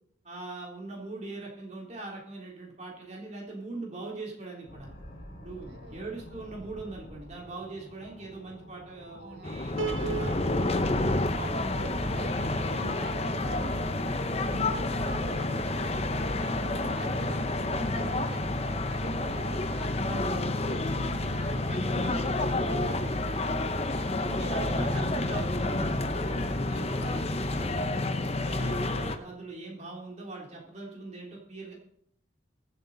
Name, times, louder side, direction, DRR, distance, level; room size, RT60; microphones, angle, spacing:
voice 1, 0.2-4.9 5.4-10.6 11.3-11.7 14.8-14.9 20.2-20.5 24.3-27.9 28.4-31.7, right 2 dB, 35° right, -2 dB, 3.2 m, -41 dB
sound 1, 4.7-15.5, equal, 80° left, 4.3 m, -48 dB
voice 2, 5.7-6.0 9.1-10.3 11.8-14.1 14.5-20.2 20.6-23.6, right 2 dB, 55° right, 5 dB, 1.7 m, -45 dB
sound 2, 9.4-29.2, left 2 dB, 30° left, 0.8 m, -29 dB
Piano, 9.8-13.0, right 5 dB, 80° right, 0.9 m, -38 dB
23.0 x 8.1 x 4.0 m, 0.68 s
head